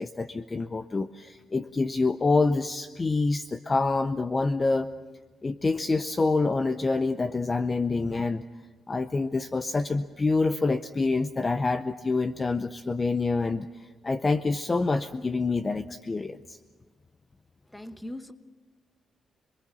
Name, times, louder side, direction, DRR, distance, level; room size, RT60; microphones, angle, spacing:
voice 1, 0.0-4.9 5.4-8.4 8.9-13.7 14.0-16.6, left 3 dB, 25° left, 10 dB, 0.6 m, -26 dB
voice 2, 17.7-18.3, left 1 dB, 5° left, 9 dB, 1.1 m, -39 dB
27.0 x 22.0 x 7.0 m, 1.4 s
cardioid pair, 140°, 0 cm